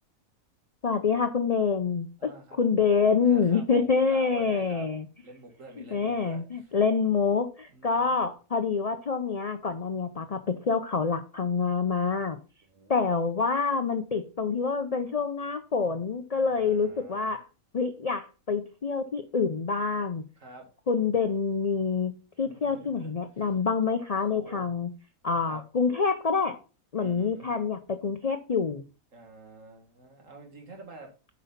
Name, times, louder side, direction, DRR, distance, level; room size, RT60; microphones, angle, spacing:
voice 1, 0.8-5.1 5.8-12.4 12.9-17.5 17.7-20.2 20.9-24.9 25.2-26.6 26.9-28.8, left 5 dB, 55° left, 8 dB, 0.4 m, -27 dB
voice 2, 2.2-2.6 3.2-4.9 5.2-6.7 7.7-8.2 12.7-12.9 16.4-17.3 20.4-20.7 22.4-23.1 24.3-24.7 25.5-25.6 27.0-27.5 29.1-31.1, right 2 dB, 60° right, 2 dB, 2.2 m, -47 dB
8.3 x 5.4 x 4.0 m, 0.34 s
omnidirectional pair, 1.5 m